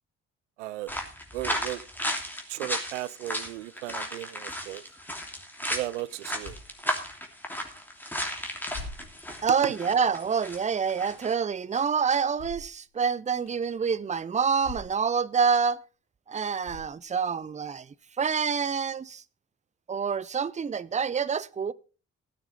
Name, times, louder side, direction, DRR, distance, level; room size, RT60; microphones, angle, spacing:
voice 1, 0.6-0.9 1.3-1.8 2.5-4.8 5.7-6.6, right 16 dB, 80° right, 0.6 m, -35 dB
sound 1, 0.9-10.6 10.9-11.3, equal, 5° left, 3.0 m, -34 dB
sound 2, 6.4-6.8 7.5-7.6 8.7-9.4 10.0-10.2 12.3-12.8 13.5-13.6 14.6-15.1 15.5-15.6 16.6-17.2, left 3 dB, 70° left, 6.0 m, -43 dB
voice 2, 9.4-15.8 16.3-19.2 19.9-21.7, right 6 dB, 20° right, 0.6 m, -27 dB
16.0 x 9.1 x 4.1 m
figure-of-eight pair, 40°, 35 cm